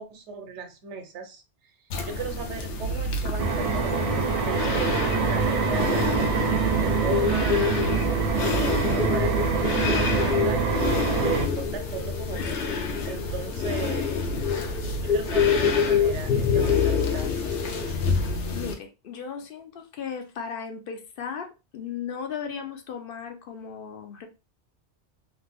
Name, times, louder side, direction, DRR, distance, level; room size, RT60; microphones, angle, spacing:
voice 1, 0.0-1.4 2.0-6.2 6.8-14.2 15.0-18.0, right 6 dB, 85° right, 1.1 m, -37 dB
sound 1, 1.9-18.7, left 4 dB, 85° left, 1.0 m, -29 dB
sound 2, 3.4-11.5, right 5 dB, 50° right, 0.4 m, -25 dB
sound 3, 5.8-17.9, left 6 dB, 10° left, 0.6 m, -28 dB
voice 2, 18.5-24.3, left 7 dB, 60° left, 0.8 m, -36 dB
3.2 x 2.5 x 3.3 m
omnidirectional pair, 1.2 m